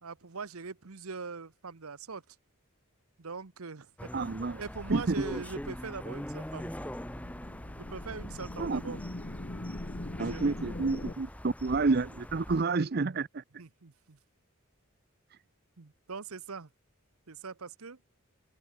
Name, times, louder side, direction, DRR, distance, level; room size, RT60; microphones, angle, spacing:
voice 1, 0.0-2.2 3.2-4.1 4.6-6.8 7.8-9.0 10.2-10.5 13.6-14.2 15.8-16.7 17.3-18.0, right 4 dB, 75° right, 1.0 m, -42 dB
sound 1, 4.0-12.6, equal, 5° left, 1.4 m, -43 dB
voice 2, 4.1-4.6 4.9-5.4 8.6-9.0 10.2-13.4, right 3 dB, 45° right, 0.6 m, -29 dB
sound 2, 6.4-11.1, left 1 dB, 35° left, 1.0 m, -42 dB
open air
head